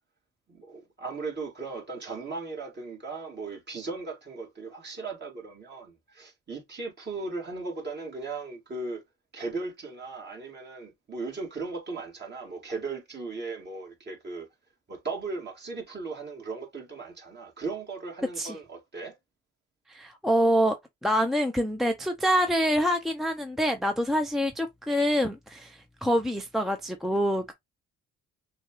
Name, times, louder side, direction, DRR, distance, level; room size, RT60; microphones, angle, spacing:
voice 1, 0.5-9.0 9.3-14.5 14.9-19.2, right 3 dB, 35° right, 2.1 m, -37 dB
voice 2, 19.9-20.7 21.0-27.5, equal, ahead, 0.6 m, -26 dB
6.2 x 2.4 x 3.0 m
cardioid pair, 90°, 30 cm